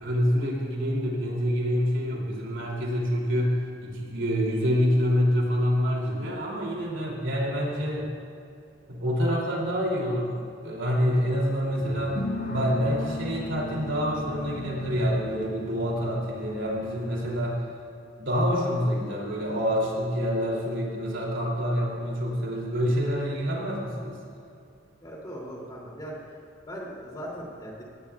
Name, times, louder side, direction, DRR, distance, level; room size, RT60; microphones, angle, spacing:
voice 1, 0.0-8.1 8.9-10.3 10.6-12.2 12.5-17.7 18.2-24.2, equal, 80° right, -2 dB, 3.1 m, -27 dB
sound 1, 11.8-17.5, left 1 dB, 70° left, 1.9 m, -37 dB
voice 2, 25.0-26.4 26.7-27.8, equal, 20° left, -3 dB, 2.9 m, -39 dB
18.0 x 16.5 x 2.4 m, 2.6 s
head